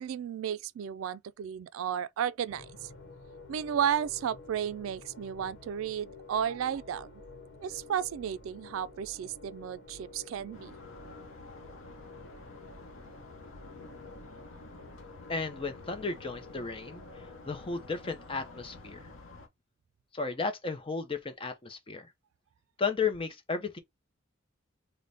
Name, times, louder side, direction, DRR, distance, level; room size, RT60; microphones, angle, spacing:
voice 1, 0.0-2.9 3.5-7.1 7.6-10.7, right 9 dB, 80° right, 0.3 m, -33 dB
sound 1, 2.5-18.0, left 3 dB, 60° left, 1.0 m, -51 dB
sound 2, 10.5-19.5, left 3 dB, 80° left, 0.8 m, -50 dB
voice 2, 15.3-19.1 20.1-22.1 22.8-23.8, left 4 dB, 25° left, 0.6 m, -34 dB
4.0 x 2.1 x 3.3 m
head